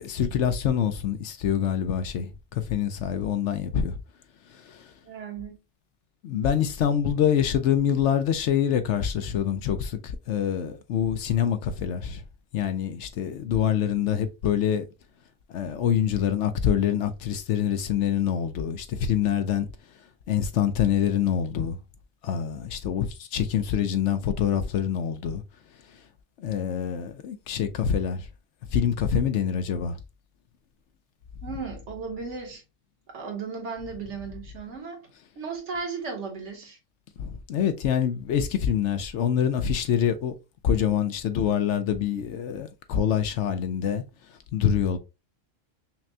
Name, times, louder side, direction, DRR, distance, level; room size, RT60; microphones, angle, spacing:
voice 1, 0.0-4.0 4.7-4.8 6.2-12.2 12.5-14.8 15.5-19.7 20.3-21.8 22.2-25.4 26.4-28.2 28.7-30.0 37.2-40.3 40.6-44.0 44.5-45.0, left 9 dB, 70° left, 0.9 m, -25 dB
voice 2, 5.0-5.6 31.4-32.6 33.1-35.1 35.4-36.8, right 5 dB, 70° right, 1.6 m, -35 dB
5.8 x 2.2 x 2.7 m
omnidirectional pair, 1.3 m